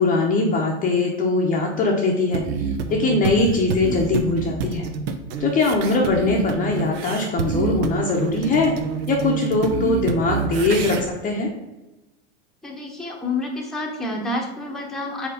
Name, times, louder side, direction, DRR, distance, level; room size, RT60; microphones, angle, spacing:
voice 1, 0.0-2.4 2.9-4.9 5.4-8.7 9.1-11.5, left 3 dB, 25° left, 0 dB, 0.8 m, -21 dB
sound 1, 2.3-11.0, right 5 dB, 60° right, 0.8 m, -27 dB
voice 2, 12.6-15.3, left 2 dB, ahead, -2 dB, 1.0 m, -28 dB
4.7 x 4.4 x 5.0 m, 1.0 s
supercardioid pair, 130°, 34 cm